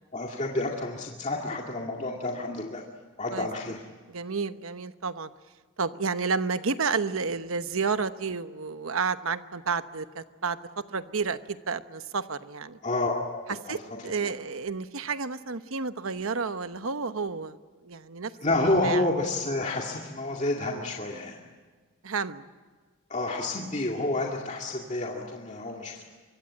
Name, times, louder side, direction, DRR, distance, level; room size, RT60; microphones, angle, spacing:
voice 1, 0.1-2.8 3.2-3.8 12.8-14.3 18.4-21.4 23.1-26.0, left 2 dB, 35° left, -1 dB, 2.2 m, -29 dB
voice 2, 4.1-5.3 5.8-12.8 13.7-17.6 17.8-18.3 18.8-19.0 22.0-22.5, right 5 dB, 80° right, 11 dB, 1.0 m, -31 dB
25.0 x 23.5 x 8.6 m, 1.4 s
head